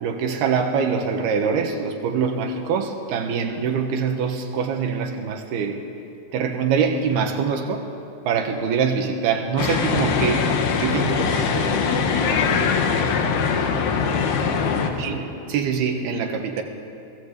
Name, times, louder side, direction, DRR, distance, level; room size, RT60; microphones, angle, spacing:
voice 1, 0.0-5.8 6.3-7.8 8.2-10.5 10.8-11.7 15.0-15.2 15.5-16.6, right 6 dB, 75° right, 4 dB, 3.4 m, -24 dB
sound 1, 9.6-14.9, left 6 dB, 85° left, 3.7 m, -22 dB
voice 2, 11.1-15.2, equal, 35° right, -5 dB, 8.0 m, -33 dB
29.0 x 19.0 x 8.2 m, 2.8 s
omnidirectional pair, 4.5 m